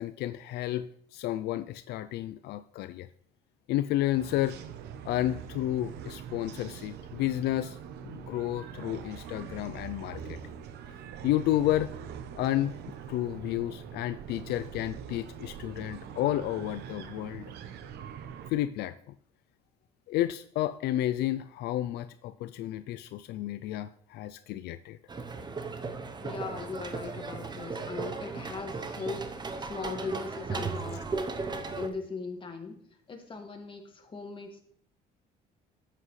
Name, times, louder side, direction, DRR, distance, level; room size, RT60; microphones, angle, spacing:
voice 1, 0.0-3.1 3.7-4.6 5.0-7.8 8.0-10.5 11.2-11.9 12.3-12.7 13.1-17.5 18.5-18.9 20.1-25.0, left 14 dB, 75° left, 12 dB, 0.4 m, -31 dB
sound 1, 4.2-18.5, right 8 dB, 75° right, 0.8 m, -43 dB
sound 2, 25.1-31.9, right 4 dB, 25° right, 0.8 m, -36 dB
voice 2, 26.2-31.1 31.8-34.6, left 4 dB, 30° left, 3 dB, 1.8 m, -39 dB
11.5 x 7.6 x 3.2 m, 0.64 s
cardioid pair, 110°, 17 cm